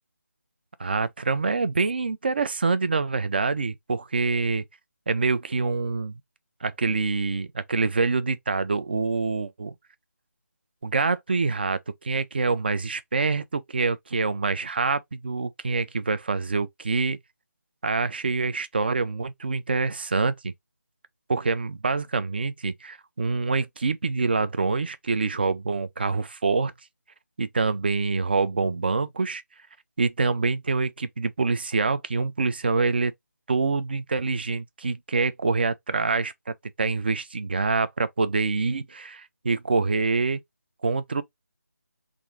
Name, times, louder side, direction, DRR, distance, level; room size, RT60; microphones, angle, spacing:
voice 1, 0.8-4.6 5.1-6.2 6.6-9.7 10.8-17.2 17.8-20.5 21.3-26.7 27.4-29.4 30.0-33.1 33.5-40.4 40.8-41.2, right 4 dB, 35° right, 0.3 m, -26 dB
3.5 x 2.5 x 3.2 m
figure-of-eight pair, 165°, 10 cm